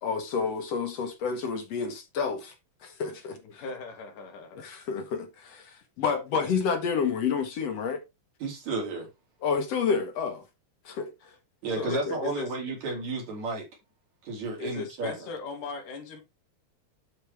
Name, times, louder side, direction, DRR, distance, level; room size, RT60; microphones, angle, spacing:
voice 1, 0.0-2.5 2.8-3.6 4.6-8.0 9.4-10.5 10.9-11.4 11.8-12.2, left 6 dB, 60° left, 2.0 m, -30 dB
voice 2, 3.6-4.7 11.8-12.5 14.6-16.2, left 4 dB, 90° left, 3.6 m, -37 dB
voice 3, 8.4-9.1 11.6-13.7 14.2-15.3, right 3 dB, 60° right, 4.0 m, -32 dB
11.5 x 4.8 x 3.4 m
omnidirectional pair, 3.6 m